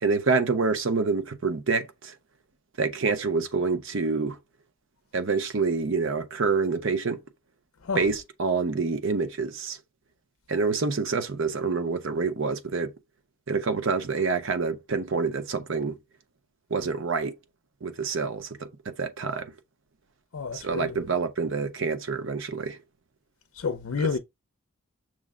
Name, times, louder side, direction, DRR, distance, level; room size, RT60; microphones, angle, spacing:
voice 1, 0.0-2.2 2.8-4.4 5.1-7.2 7.9-9.8 10.5-12.9 13.5-16.0 16.7-17.4 17.8-19.5 20.5-22.8 24.0-24.1, right 4 dB, 60° right, 0.7 m, -27 dB
voice 2, 20.3-21.0 23.5-24.2, left 5 dB, 70° left, 0.5 m, -29 dB
6.2 x 2.1 x 3.6 m
head